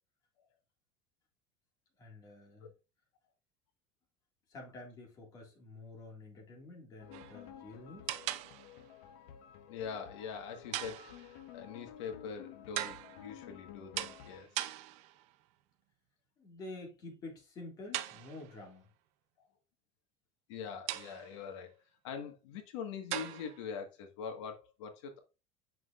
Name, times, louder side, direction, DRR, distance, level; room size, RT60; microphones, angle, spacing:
voice 1, 2.0-2.7 4.5-8.1 16.4-18.9, left 2 dB, 25° left, 2.0 m, -49 dB
sound 1, 7.0-14.4, left 10 dB, 65° left, 0.9 m, -53 dB
sound 2, 7.1-7.5 8.1-8.9 10.7-11.5 12.8-13.4 14.0-15.3 17.9-18.7 20.9-21.5 23.1-23.7, right 14 dB, 50° right, 0.5 m, -40 dB
voice 2, 9.7-14.6 19.4-19.5 20.5-21.8 22.0-25.2, left 6 dB, 90° left, 1.5 m, -43 dB
7.6 x 6.0 x 2.4 m
cardioid pair, 170°, 15 cm